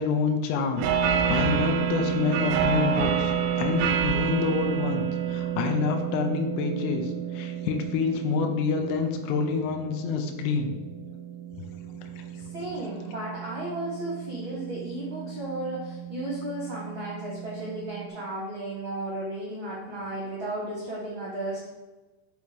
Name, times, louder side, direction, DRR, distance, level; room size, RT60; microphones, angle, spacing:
voice 1, 0.0-10.7 12.2-12.3, left 5 dB, 75° left, 4 dB, 2.6 m, -28 dB
sound 1, 0.8-18.1, right 8 dB, 85° right, 2.7 m, -30 dB
voice 2, 12.3-21.7, right 1 dB, 55° right, -7 dB, 1.3 m, -34 dB
6.4 x 5.0 x 5.2 m, 1.1 s
omnidirectional pair, 5.3 m